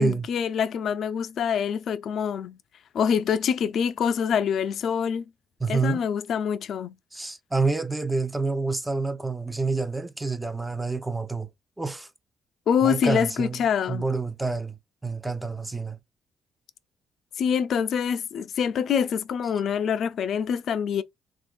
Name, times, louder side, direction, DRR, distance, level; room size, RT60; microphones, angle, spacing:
voice 1, 0.0-2.6 2.9-5.2 5.7-6.9 12.7-14.0 17.4-21.0, left 7 dB, 65° left, 0.4 m, -25 dB
voice 2, 5.6-6.0 7.1-11.5 11.8-12.1 12.8-13.6 13.9-14.8 15.0-16.0, right 4 dB, 10° right, 0.5 m, -28 dB
3.5 x 2.4 x 2.4 m
cardioid pair, 90°, 0 cm